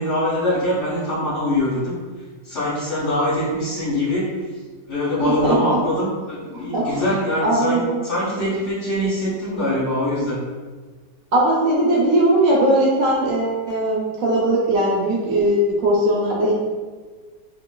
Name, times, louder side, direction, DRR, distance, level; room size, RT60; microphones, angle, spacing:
voice 1, 0.0-1.9 2.4-4.3 4.9-10.4, left 1 dB, 50° left, -9 dB, 1.0 m, -23 dB
voice 2, 5.2-5.8 6.5-7.0 7.4-8.0 11.3-16.5, right 1 dB, 70° right, -4 dB, 0.8 m, -19 dB
3.0 x 2.5 x 2.2 m, 1.4 s
omnidirectional pair, 1.8 m